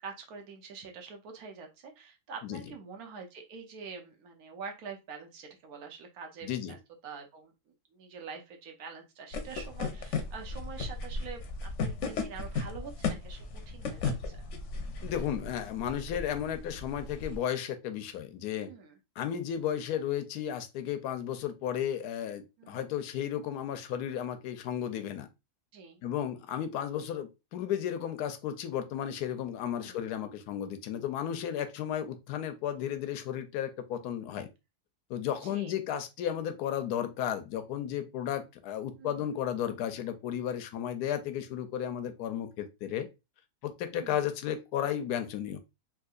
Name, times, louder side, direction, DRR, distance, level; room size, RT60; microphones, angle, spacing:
voice 1, 0.0-6.8 7.0-14.4 18.6-19.0 22.6-22.9 25.7-26.0 29.6-30.0 35.3-35.7 39.0-39.3 43.9-44.3, right 5 dB, 75° right, 1.2 m, -46 dB
voice 2, 6.4-6.8 15.0-18.7 19.2-25.3 26.0-34.5 35.1-43.1 43.6-45.6, left 10 dB, 85° left, 1.1 m, -34 dB
sound 1, 9.3-17.4, left 4 dB, 60° left, 0.9 m, -36 dB
3.6 x 2.8 x 2.4 m
omnidirectional pair, 1.6 m